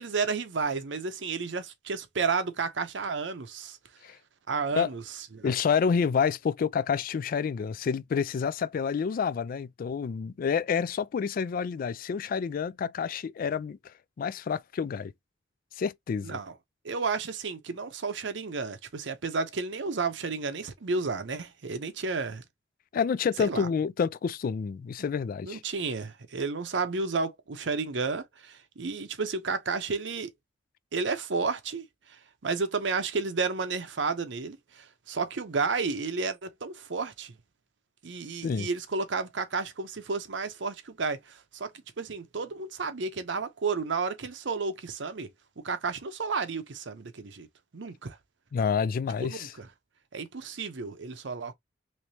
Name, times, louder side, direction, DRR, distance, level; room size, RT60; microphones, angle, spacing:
voice 1, 0.0-3.8 4.5-5.0 5.3-5.5 16.2-16.5 16.8-22.4 23.4-23.7 25.4-30.3 30.9-31.8 32.1-37.3 38.0-45.3 45.6-47.5 47.7-48.2 49.2-49.7 50.1-51.5, right 4 dB, 80° right, 0.7 m, -32 dB
voice 2, 5.4-13.8 14.2-15.1 15.8-16.4 22.9-25.6 38.4-38.7 48.5-49.5, left 6 dB, 50° left, 0.3 m, -28 dB
3.2 x 3.1 x 2.8 m
head